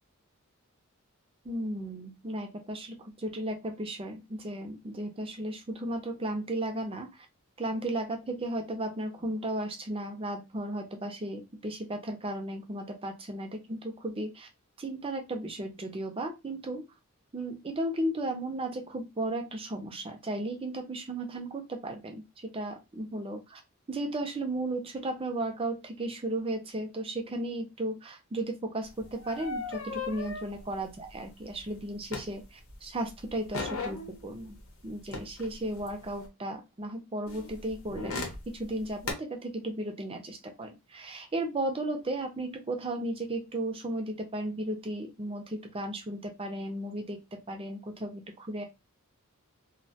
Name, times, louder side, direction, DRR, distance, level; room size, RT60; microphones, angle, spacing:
voice 1, 1.4-7.3 7.6-14.5 14.8-16.9 17.3-23.6 23.9-34.6 34.8-48.6, right 1 dB, 25° right, 4 dB, 0.5 m, -35 dB
sound 1, 28.9-32.8 33.1-36.3 37.3-39.1, left 4 dB, 75° left, 0.8 m, -38 dB
2.3 x 2.1 x 2.7 m, 0.25 s
head